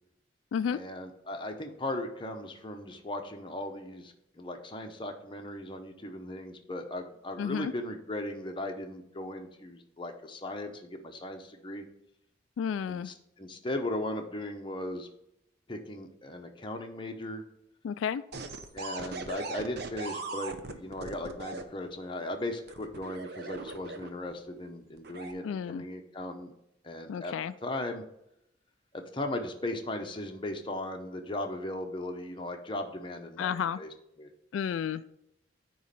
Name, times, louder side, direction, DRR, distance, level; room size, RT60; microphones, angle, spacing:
voice 1, 0.7-11.8 12.9-15.1 15.7-17.4 18.7-26.5 26.8-27.3 27.6-28.0 28.9-33.9 34.2-34.3, left 1 dB, 25° left, 4 dB, 0.8 m, -37 dB
voice 2, 7.4-7.7 12.6-13.1 17.8-18.2 25.4-25.8 27.1-27.5 33.4-33.8 34.5-35.1, left 7 dB, 85° left, 13 dB, 0.3 m, -31 dB
sound 1, 18.3-21.6 22.7-24.3 25.0-25.3, right 3 dB, 55° right, 0.7 m, -39 dB
9.4 x 3.1 x 6.7 m, 0.81 s
head